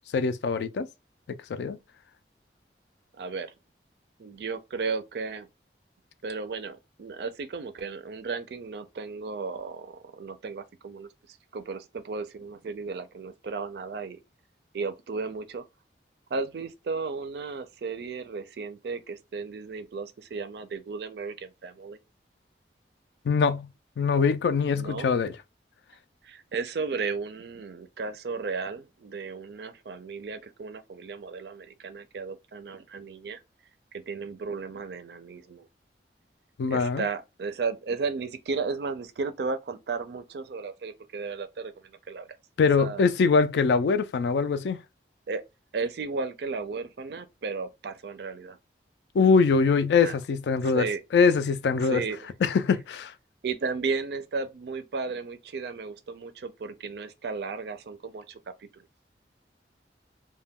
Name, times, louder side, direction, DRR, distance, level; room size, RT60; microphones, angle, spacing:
voice 1, 0.1-0.9 1.5-1.8 23.3-23.7 24.0-25.3 36.6-37.1 42.6-44.8 49.1-50.9 51.1-52.0 52.4-53.1, left 5 dB, 75° left, 0.3 m, -23 dB
voice 2, 3.1-3.5 4.2-5.5 6.2-14.2 14.7-15.6 16.3-22.0 24.8-25.2 26.2-33.4 33.9-35.7 36.7-42.3 42.8-43.1 45.3-45.4 45.7-48.6 50.0-50.2 50.6-51.0 51.8-52.3 53.4-58.8, right 4 dB, 70° right, 0.4 m, -34 dB
2.2 x 2.1 x 3.4 m
head